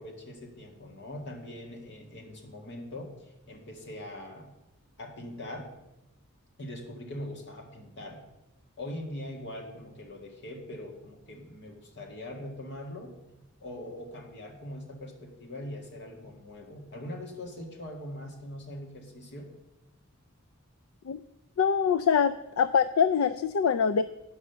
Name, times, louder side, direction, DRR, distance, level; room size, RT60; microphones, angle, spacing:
voice 1, 0.0-4.5 5.0-5.7 6.6-8.2 8.8-13.1 13.6-19.5, left 1 dB, 55° left, 1 dB, 1.9 m, -42 dB
voice 2, 21.6-24.0, left 6 dB, 75° left, 13 dB, 0.3 m, -24 dB
9.6 x 5.5 x 6.7 m, 0.96 s
head